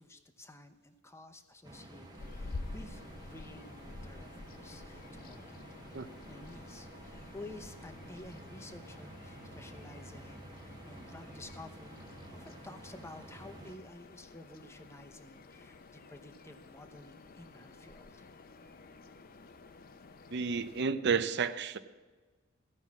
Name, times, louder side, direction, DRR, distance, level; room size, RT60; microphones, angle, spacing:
voice 1, 0.0-5.6 6.3-18.3, left 2 dB, 15° left, 8 dB, 0.8 m, -52 dB
sound 1, 1.6-13.7, right 1 dB, 20° right, 1.2 m, -51 dB
sound 2, 2.2-20.8, left 3 dB, 45° left, 0.6 m, -50 dB
voice 2, 20.3-21.8, right 5 dB, 55° right, 12 dB, 0.6 m, -31 dB
15.0 x 5.5 x 7.3 m, 1.3 s
head